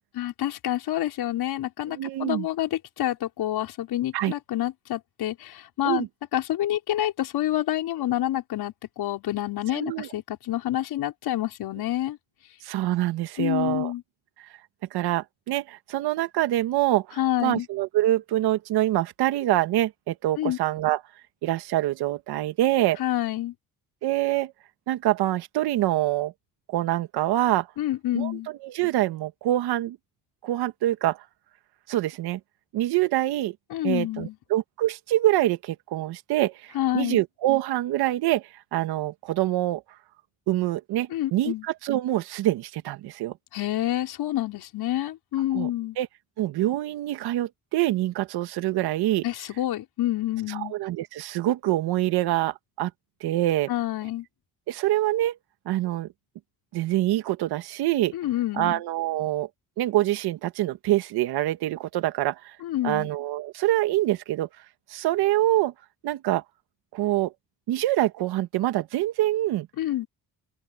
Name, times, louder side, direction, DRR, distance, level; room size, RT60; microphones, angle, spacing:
voice 1, 0.2-6.1 6.3-12.2 13.4-14.0 17.2-17.7 20.4-20.6 23.0-23.5 27.8-28.5 33.7-34.4 36.7-37.2 41.1-41.7 43.5-46.0 49.2-50.7 53.7-54.3 58.1-58.8 62.6-63.1 69.8-70.1, left 13 dB, 75° left, 5.3 m, -28 dB
voice 2, 1.9-2.5 4.1-4.3 5.8-6.1 9.7-10.1 12.6-13.9 14.9-21.0 21.4-23.0 24.0-24.5 24.9-26.3 26.7-27.7 28.1-28.3 28.6-30.0 30.4-31.2 31.9-32.4 32.7-33.5 33.8-39.8 40.5-43.4 45.5-45.7 46.0-46.1 46.4-49.2 50.5-52.9 53.2-53.7 54.7-55.4 55.6-56.1 56.7-58.1 58.6-59.5 59.8-62.5 62.8-64.5 64.9-65.7 66.0-66.4 66.9-67.3 67.7-69.7, right 15 dB, 85° right, 1.8 m, -25 dB
open air
cardioid pair, 75°, 38 cm